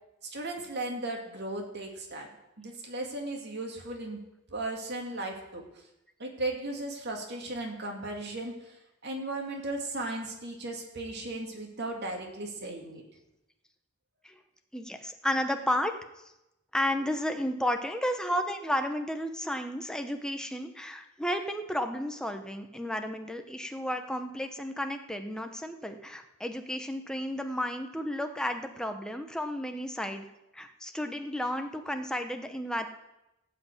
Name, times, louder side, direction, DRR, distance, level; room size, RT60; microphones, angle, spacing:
voice 1, 0.2-2.3 2.6-4.2 4.5-5.6 6.2-8.8 9.0-13.0, right 2 dB, 55° right, 1 dB, 2.4 m, -36 dB
voice 2, 14.7-15.9 16.2-16.3 16.7-30.3 30.5-32.9, left 1 dB, 5° left, 5 dB, 1.0 m, -32 dB
17.0 x 5.8 x 8.5 m, 0.91 s
head